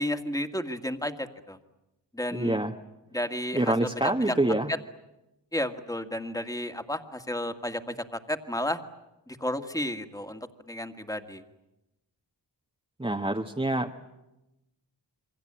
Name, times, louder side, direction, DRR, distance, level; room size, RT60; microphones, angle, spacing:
voice 1, 0.0-1.6 2.1-2.6 3.1-4.3 5.5-8.8 9.3-11.4, left 1 dB, 10° left, 7 dB, 2.0 m, -32 dB
voice 2, 2.3-2.7 3.5-4.7 13.0-14.0, right 1 dB, 10° right, 2 dB, 1.4 m, -26 dB
28.0 x 24.0 x 8.8 m, 0.94 s
wide cardioid pair, 65°, 43 cm